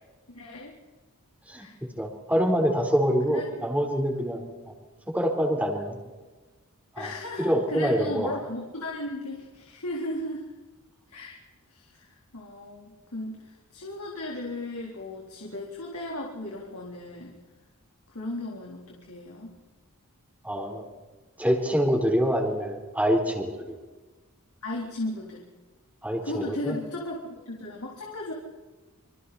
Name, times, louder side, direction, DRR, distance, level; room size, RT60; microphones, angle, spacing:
voice 1, 0.3-0.7 1.6-1.7 3.3-3.5 7.0-10.5 11.1-11.4 11.7-17.4 18.1-19.6 24.6-25.5 26.2-28.3, left 1 dB, 90° left, -2 dB, 3.8 m, -36 dB
voice 2, 2.0-4.7 5.1-6.0 7.0-7.1 7.4-8.4 20.4-20.8 21.4-23.8 26.0-26.8, equal, 5° right, 2 dB, 4.2 m, -25 dB
27.5 x 25.5 x 4.3 m, 1.3 s
head